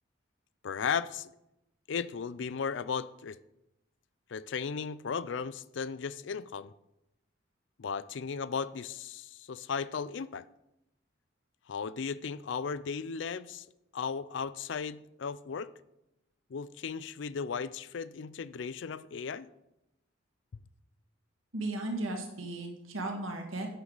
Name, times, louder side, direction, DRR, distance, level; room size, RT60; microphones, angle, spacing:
voice 1, 0.6-1.3 1.9-3.4 4.3-6.7 7.8-10.5 11.7-13.7 13.9-15.7 16.5-19.5, left 6 dB, 65° left, 0.4 m, -36 dB
voice 2, 21.5-23.7, right 2 dB, 90° right, 1.9 m, -35 dB
11.0 x 9.0 x 4.0 m
head